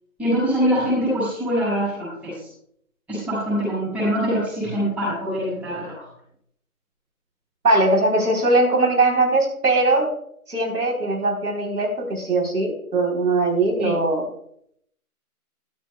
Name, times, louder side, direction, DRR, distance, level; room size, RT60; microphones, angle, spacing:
voice 1, 0.2-2.5 3.1-6.1 13.8-13.9, equal, 5° right, -8 dB, 5.6 m, -24 dB
voice 2, 7.6-10.1 10.5-14.2, right 2 dB, 85° right, 2 dB, 3.8 m, -20 dB
14.0 x 13.0 x 2.3 m, 0.69 s
hypercardioid pair, 165°, 45 cm